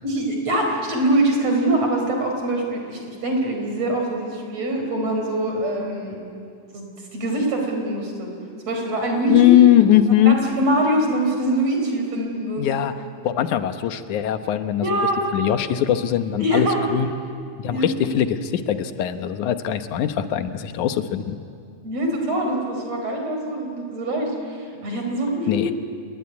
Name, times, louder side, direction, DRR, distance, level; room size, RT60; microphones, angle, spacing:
voice 1, 0.0-6.2 6.7-8.3 8.7-9.5 10.3-12.8 14.8-15.2 16.4-16.8 17.7-18.1 21.8-25.7, right 1 dB, 60° right, 2 dB, 5.6 m, -24 dB
voice 2, 9.3-10.4 12.6-12.9 13.2-15.0 15.3-17.1 17.6-21.4 25.5-25.7, left 11 dB, 90° left, 9 dB, 2.5 m, -20 dB
28.0 x 21.0 x 9.7 m, 2.3 s
omnidirectional pair, 3.4 m